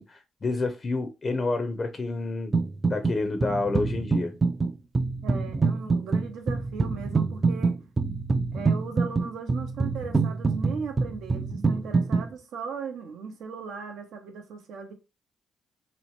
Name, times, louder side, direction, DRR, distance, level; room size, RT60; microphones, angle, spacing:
voice 1, 0.0-2.5 2.9-4.3, left 3 dB, 40° left, 0.5 m, -29 dB
sound 1, 2.5-3.2 3.4-12.3, right 4 dB, 30° right, 0.3 m, -25 dB
voice 2, 5.2-7.8 8.5-14.9, right 5 dB, 80° right, 0.6 m, -37 dB
2.8 x 2.1 x 2.8 m
cardioid pair, 75°, 0 cm